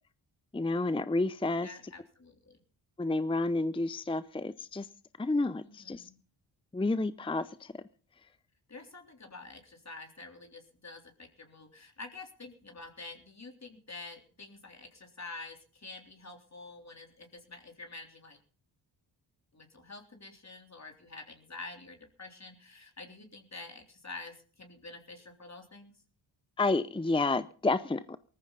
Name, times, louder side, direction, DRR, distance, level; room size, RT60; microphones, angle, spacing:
voice 1, 0.5-1.7 3.0-4.9 5.2-6.0 6.7-7.7 26.6-28.2, left 2 dB, 10° left, 15 dB, 0.7 m, -30 dB
voice 2, 1.6-2.6 5.6-6.2 8.7-18.4 19.5-25.9, left 3 dB, 35° left, 3 dB, 3.7 m, -48 dB
18.5 x 14.5 x 4.1 m, 0.40 s
supercardioid pair, 50°, 47 cm